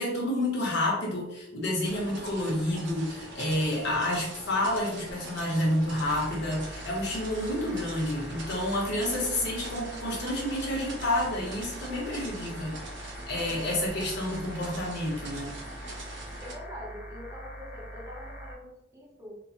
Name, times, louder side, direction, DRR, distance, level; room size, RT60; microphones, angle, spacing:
voice 1, 0.0-12.7 13.3-15.5, left 1 dB, 65° left, -3 dB, 0.9 m, -29 dB
sound 1, 1.8-16.5, right 1 dB, 65° right, 0.6 m, -43 dB
sound 2, 6.0-18.5, equal, 45° left, 0.4 m, -43 dB
voice 2, 13.4-13.8 16.4-19.4, left 1 dB, 15° right, -4 dB, 0.6 m, -44 dB
3.1 x 2.0 x 2.6 m, 0.88 s
head